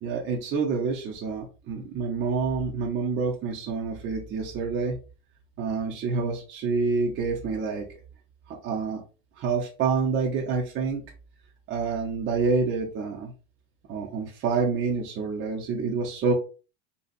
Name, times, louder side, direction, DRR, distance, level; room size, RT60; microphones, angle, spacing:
voice 1, 0.0-5.0 5.6-7.9 8.5-9.0 9.4-11.0 11.7-13.3 13.9-16.3, right 4 dB, 40° right, -1 dB, 0.8 m, -27 dB
4.0 x 2.3 x 2.5 m, 0.34 s
cardioid pair, 140°, 32 cm